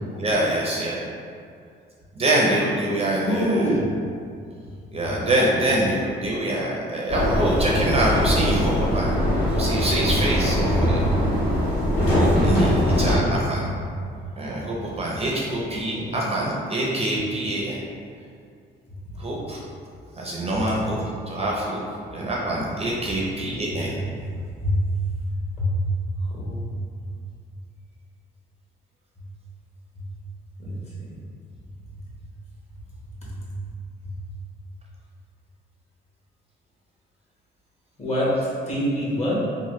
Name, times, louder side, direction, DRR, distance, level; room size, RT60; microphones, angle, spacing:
voice 1, 0.1-1.1 2.2-3.7 4.9-9.1 9.4-11.1 12.1-13.7 14.4-17.8 19.2-19.6 20.2-21.8 22.1-24.0, right 1 dB, 30° right, -4 dB, 0.5 m, -25 dB
voice 2, 3.1-3.9 13.2-14.0 15.9-16.3 20.6-20.9 23.7-23.8 24.1-24.9 25.6-25.8 26.2-26.7 30.0-30.1 30.6-31.1 33.2-33.6 34.1-34.2 38.0-39.4, equal, 35° left, -7 dB, 1.0 m, -27 dB
sound 1, 7.1-13.2, equal, 55° left, 1.5 m, -21 dB
3.1 x 2.0 x 3.0 m, 2.3 s
cardioid pair, 90°, 20 cm